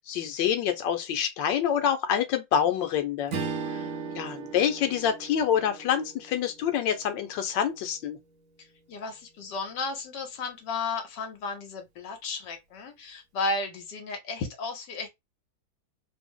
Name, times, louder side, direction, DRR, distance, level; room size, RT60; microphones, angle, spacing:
voice 1, 0.0-3.3 4.1-8.2, left 9 dB, 90° left, 1.4 m, -26 dB
Strum, 3.3-7.9, right 5 dB, 60° right, 0.9 m, -38 dB
voice 2, 3.6-4.2 8.6-15.1, left 3 dB, 75° left, 1.5 m, -34 dB
3.4 x 2.1 x 3.6 m
omnidirectional pair, 1.9 m